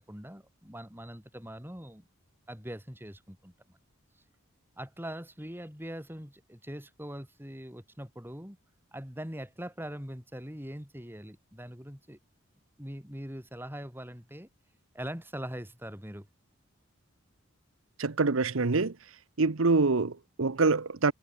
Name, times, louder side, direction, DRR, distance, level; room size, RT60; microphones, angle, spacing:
voice 1, 0.0-2.0 2.5-3.5 4.8-8.6 8.9-12.2 12.8-14.5 14.9-16.3, equal, 10° right, 5.3 m, -42 dB
voice 2, 18.0-19.0 19.4-21.1, right 3 dB, 75° right, 0.9 m, -25 dB
head